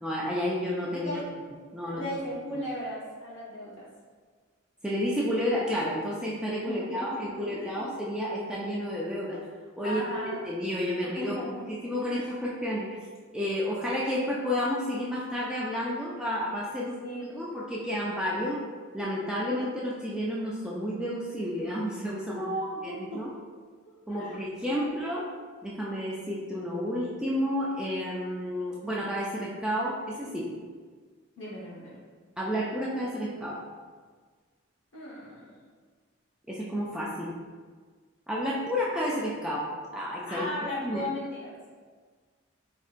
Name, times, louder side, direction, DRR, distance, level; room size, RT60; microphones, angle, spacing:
voice 1, 0.0-1.1 1.7-2.0 2.5-2.6 4.8-9.4 9.8-10.2 10.4-12.9 13.3-16.9 17.3-18.6 18.9-22.4 22.8-23.3 24.1-25.2 25.6-30.5 32.4-33.6 36.5-37.3 38.3-39.7 39.9-40.4 40.8-41.0, equal, 5° right, -6 dB, 0.3 m, -31 dB
voice 2, 0.9-1.3 1.8-3.9 6.6-7.9 9.8-10.4 11.2-11.6 12.0-12.1 16.7-17.4 22.3-23.2 23.8-24.4 24.7-24.8 31.4-32.0 34.9-35.6 40.3-41.5, equal, 60° left, -6 dB, 1.1 m, -36 dB
4.4 x 2.7 x 2.4 m, 1.5 s
head